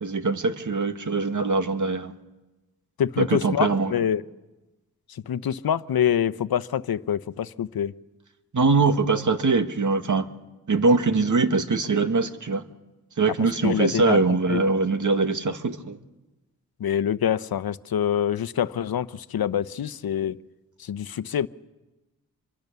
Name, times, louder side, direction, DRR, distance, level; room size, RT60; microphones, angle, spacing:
voice 1, 0.0-2.1 3.2-3.9 8.5-10.3 10.7-12.6 13.2-16.0, right 3 dB, 50° right, 8 dB, 2.1 m, -22 dB
voice 2, 3.0-4.2 5.1-7.9 13.4-14.2 14.5-14.6 16.8-20.4 20.8-21.5, left 9 dB, 70° left, 15 dB, 0.9 m, -26 dB
27.0 x 23.5 x 7.0 m, 1.1 s
cardioid pair, 45°, 38 cm